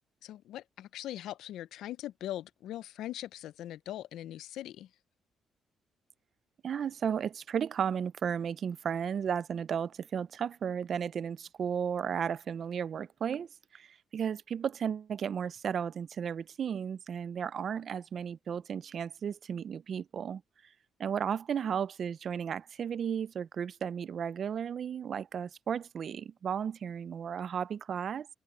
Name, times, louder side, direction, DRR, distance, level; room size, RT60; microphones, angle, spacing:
voice 1, 0.2-4.9, left 13 dB, 80° left, 0.5 m, -41 dB
voice 2, 6.6-20.4 21.0-28.3, right 7 dB, 55° right, 0.6 m, -34 dB
cardioid pair, 90°, 0 cm